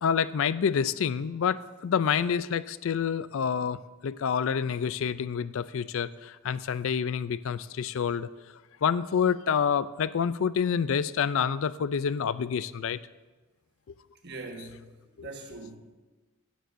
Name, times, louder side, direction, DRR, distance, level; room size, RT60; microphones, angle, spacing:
voice 1, 0.0-8.3 8.8-13.0 13.9-14.0 15.2-15.3, left 7 dB, 65° left, 16 dB, 0.4 m, -28 dB
voice 2, 14.2-14.9 15.2-15.8, right 3 dB, 50° right, 3 dB, 1.4 m, -41 dB
16.0 x 12.5 x 2.6 m, 1.2 s
head